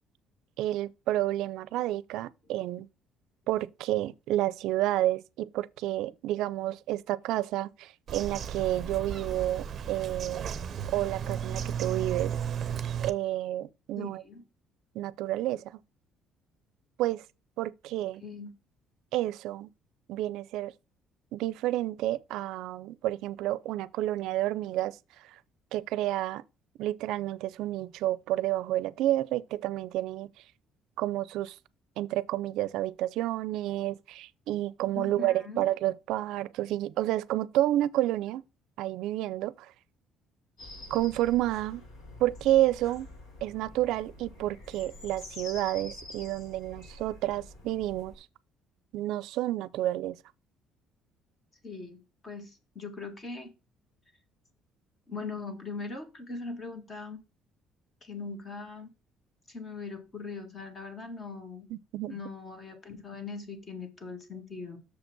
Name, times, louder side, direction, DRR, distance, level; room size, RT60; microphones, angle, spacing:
voice 1, 0.6-2.9 3.5-10.5 10.9-12.4 13.0-14.2 14.9-15.7 17.0-17.2 17.6-18.2 19.1-19.7 20.1-20.7 21.3-25.0 25.2-25.3 25.7-26.4 26.8-30.3 31.0-31.6 32.0-38.4 38.8-39.7 40.9-41.8 42.2-43.1 43.4-48.3 48.9-50.2 61.7-62.2, right 14 dB, 75° right, 0.5 m, -30 dB
Bird vocalization bird call bird song, 8.1-13.1, right 8 dB, 35° right, 0.7 m, -34 dB
voice 2, 14.0-14.4 18.2-18.5 35.0-35.7 51.6-52.0 52.2-53.5 55.1-57.2 58.0-58.9 59.5-61.7 62.1-64.8, left 4 dB, 25° left, 1.7 m, -40 dB
sound 1, 40.6-48.2, left 2 dB, 75° left, 5.0 m, -47 dB
6.8 x 5.3 x 6.0 m
cardioid pair, 155°, 0 cm